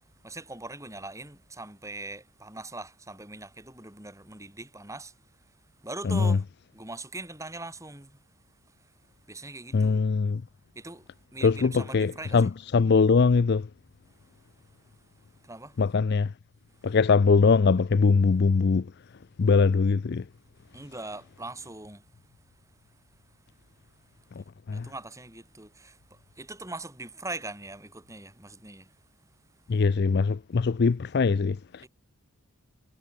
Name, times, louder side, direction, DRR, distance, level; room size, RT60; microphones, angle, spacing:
voice 1, 0.2-5.1 5.8-6.4 6.7-8.2 9.3-10.0 10.7-11.0 11.3-12.5 15.5-15.7 20.7-22.0 24.7-26.0 26.4-28.9 31.8-31.9, right 2 dB, 15° right, 7.9 m, -41 dB
voice 2, 6.0-6.4 9.7-10.4 11.4-13.7 15.8-16.3 16.8-18.9 19.4-20.2 24.4-24.9 29.7-31.9, left 4 dB, 45° left, 0.4 m, -22 dB
head